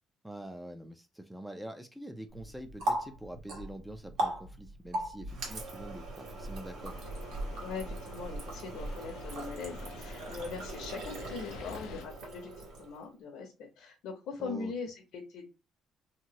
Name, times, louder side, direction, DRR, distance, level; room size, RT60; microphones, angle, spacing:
voice 1, 0.2-7.0 14.4-14.7, right 1 dB, ahead, 6 dB, 0.3 m, -45 dB
Water tap faucet, 2.3-13.1, right 1 dB, 75° right, 1.4 m, -39 dB
sound 1, 6.8-12.1, left 7 dB, 90° left, 0.4 m, -50 dB
voice 2, 7.6-15.4, left 5 dB, 70° left, 1 dB, 0.7 m, -41 dB
2.9 x 2.6 x 2.7 m, 0.28 s
cardioid pair, 155°, 0 cm